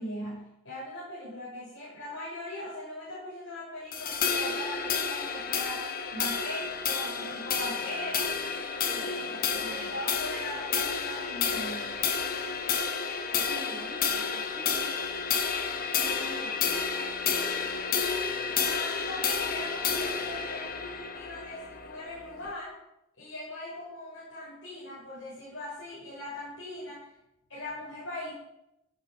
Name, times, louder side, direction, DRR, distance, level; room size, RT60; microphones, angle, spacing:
voice 1, 0.0-8.3 9.5-12.0 18.6-22.7 23.2-27.1 27.5-28.3, left 1 dB, 85° left, -8 dB, 7.4 m, -40 dB
sound 1, 3.9-22.5, left 6 dB, 50° left, 1.4 m, -31 dB
voice 2, 8.8-9.9 13.3-15.0 16.0-16.6, left 1 dB, 25° left, -6 dB, 4.0 m, -45 dB
15.5 x 11.5 x 5.5 m, 0.86 s
head